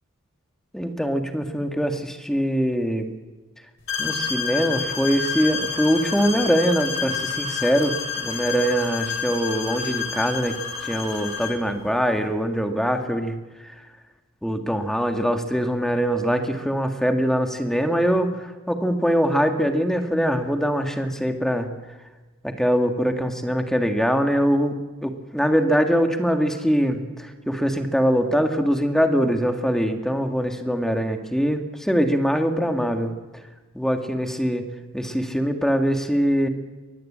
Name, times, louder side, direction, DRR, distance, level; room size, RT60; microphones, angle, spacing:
voice 1, 0.7-3.1 4.0-10.6 10.8-13.4 13.6-13.7 14.4-21.7 22.4-33.1 33.7-34.6 34.9-36.5, equal, ahead, 5 dB, 1.9 m, -23 dB
sound 1, 3.9-11.6, left 5 dB, 60° left, 4.6 m, -29 dB
23.5 x 19.0 x 8.8 m, 1.2 s
head